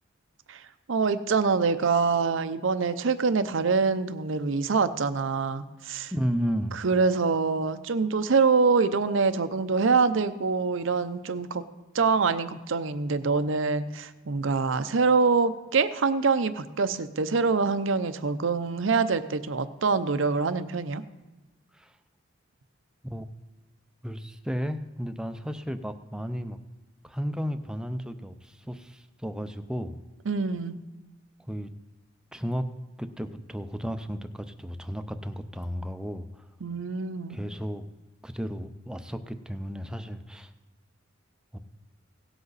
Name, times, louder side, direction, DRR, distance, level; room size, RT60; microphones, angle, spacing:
voice 1, 0.9-6.1 6.7-11.7 11.9-21.0 30.3-30.8 36.6-37.4, right 4 dB, 70° right, 12 dB, 0.6 m, -25 dB
voice 2, 6.1-6.8 21.7-21.9 23.1-23.2 24.0-26.6 27.0-30.0 31.5-31.7 32.3-32.6 33.0-36.4 37.3-37.8 38.2-40.5 41.5-41.6, equal, 5° right, 8 dB, 0.6 m, -33 dB
17.0 x 7.9 x 4.0 m, 1.1 s
head